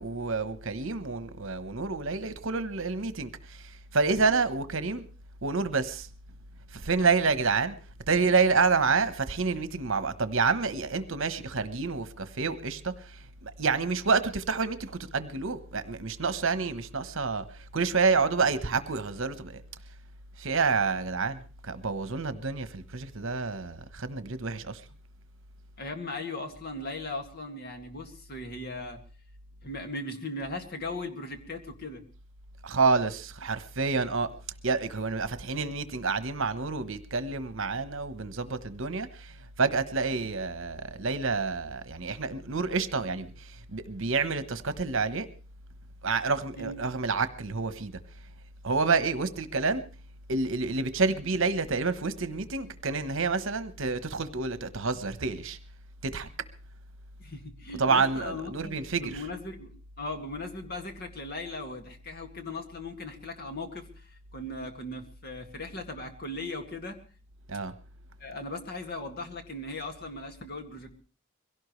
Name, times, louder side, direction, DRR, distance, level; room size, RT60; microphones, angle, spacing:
voice 1, 0.0-5.1 5.4-6.1 6.7-7.8 8.1-19.6 20.4-24.8 32.6-34.3 34.6-45.3 46.0-47.9 48.6-49.8 50.3-55.6 56.0-56.3 57.8-59.2 67.5-67.7, right 4 dB, 65° right, 1.1 m, -28 dB
voice 2, 25.8-29.0 29.6-32.0 46.6-46.8 57.2-67.0 68.2-70.9, left 2 dB, 50° left, 2.2 m, -38 dB
23.0 x 17.0 x 3.2 m
head